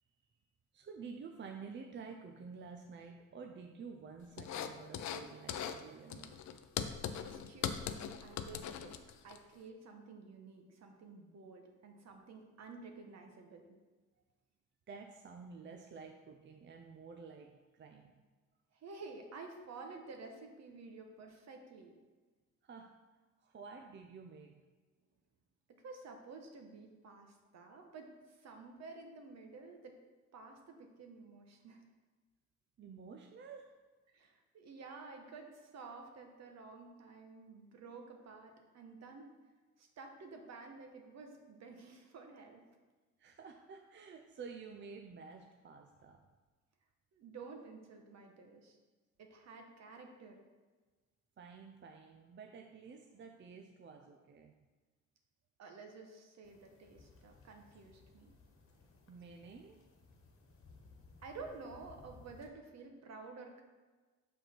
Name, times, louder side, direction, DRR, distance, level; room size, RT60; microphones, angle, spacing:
voice 1, 0.7-6.4 14.9-18.2 22.6-23.0 23.4-24.6 32.8-33.8 43.2-46.3 51.4-54.5 59.1-59.9, right 5 dB, 40° right, 3 dB, 0.6 m, -51 dB
sound 1, 4.4-5.2 5.5-5.8 6.1-9.4, left 8 dB, 70° left, 0.6 m, -40 dB
voice 2, 7.2-9.0 9.2-13.8 18.7-21.9 25.8-30.0 30.3-31.8 34.1-39.3 39.8-42.6 47.1-48.8 49.2-50.4 55.6-58.3 61.2-63.6, right 4 dB, 60° right, 3 dB, 1.2 m, -52 dB
sound 2, 56.4-62.5, left 3 dB, 45° left, 1.3 m, -61 dB
6.3 x 5.4 x 4.5 m, 1.3 s
cardioid pair, 90°, 30 cm